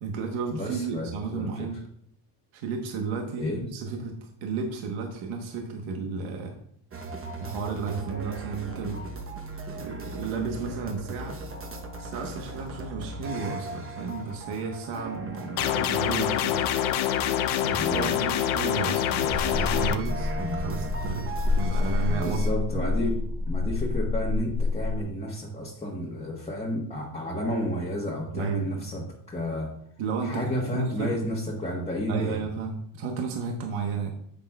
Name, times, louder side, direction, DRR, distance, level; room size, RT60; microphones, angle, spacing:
voice 1, 0.0-1.8 2.5-6.5 7.4-9.0 9.7-11.4 11.9-16.6 17.6-21.3 21.6-22.4 22.7-22.9 28.3-29.0 30.0-31.1 32.1-34.1, right 5 dB, 80° right, 2 dB, 1.2 m, -33 dB
voice 2, 0.5-1.7 3.4-3.6 17.8-18.2 20.4-20.7 22.1-23.2 23.5-29.7 30.2-32.4, equal, 15° left, -3 dB, 1.3 m, -31 dB
sound 1, 6.9-22.5, right 2 dB, 25° right, 1.0 m, -38 dB
sound 2, 15.6-20.0, left 10 dB, 85° left, 0.8 m, -26 dB
sound 3, 19.3-25.0, left 3 dB, 10° right, 2.2 m, -28 dB
10.0 x 8.0 x 2.3 m, 0.67 s
cardioid pair, 125°, 47 cm